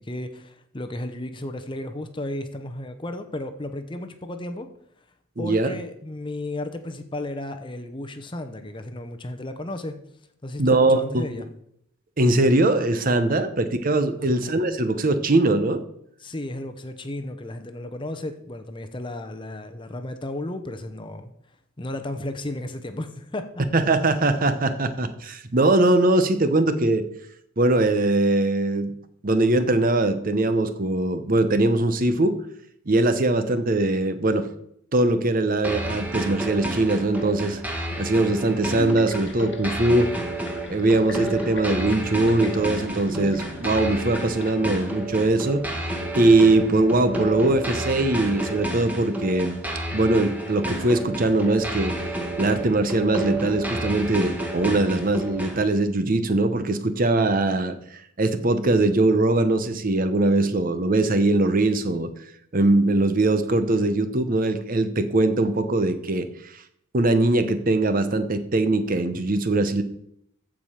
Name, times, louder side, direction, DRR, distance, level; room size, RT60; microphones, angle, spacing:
voice 1, 0.0-4.7 5.4-10.0 10.4-11.5 14.2-14.4 16.2-21.3 21.8-23.5, left 1 dB, 20° left, 7 dB, 0.8 m, -34 dB
voice 2, 5.4-5.7 10.6-11.2 12.2-15.8 23.7-27.0 27.6-28.9 29.2-32.4 32.9-34.5 34.9-40.1 40.7-49.6 49.9-51.9 52.4-62.1 62.5-66.6 66.9-69.8, right 2 dB, 40° right, 10 dB, 0.8 m, -21 dB
sound 1, 35.6-55.6, right 1 dB, 5° right, 1.3 m, -31 dB
sound 2, 38.7-44.5, left 2 dB, 50° left, 1.2 m, -40 dB
14.5 x 4.9 x 5.7 m, 0.72 s
head